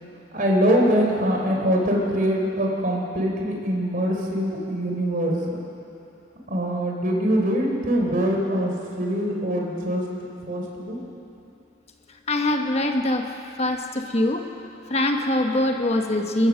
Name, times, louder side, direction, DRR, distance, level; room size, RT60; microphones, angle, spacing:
voice 1, 0.3-5.6 6.5-10.1 10.4-11.0, equal, 45° right, 0 dB, 3.7 m, -23 dB
voice 2, 12.3-13.2 13.6-14.4 14.9-16.5, left 1 dB, 35° left, 4 dB, 1.3 m, -23 dB
28.0 x 14.5 x 6.5 m, 2.8 s
head